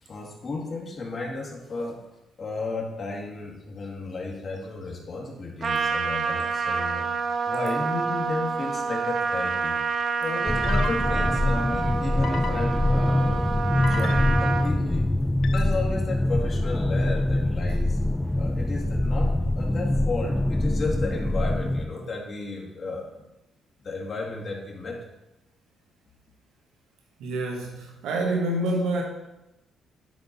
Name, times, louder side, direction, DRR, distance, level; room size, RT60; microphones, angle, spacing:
voice 1, 0.0-2.0 2.4-7.1 7.5-9.8 10.2-13.5 13.7-15.1 15.5-18.0 18.3-23.2 23.8-25.0, left 3 dB, 50° left, -1 dB, 1.9 m, -33 dB
Trumpet, 5.6-14.7, right 5 dB, 50° right, 0.7 m, -28 dB
sound 1, 9.5-9.8 10.6-11.4 12.2-13.1 13.8-14.6 15.4-16.1, left 7 dB, 65° left, 0.5 m, -38 dB
sound 2, 10.5-21.9, left 1 dB, 5° left, 0.3 m, -24 dB
voice 2, 27.2-29.0, right 1 dB, 85° right, 0 dB, 1.2 m, -27 dB
10.5 x 3.9 x 4.1 m, 0.95 s
cardioid pair, 90°, 0 cm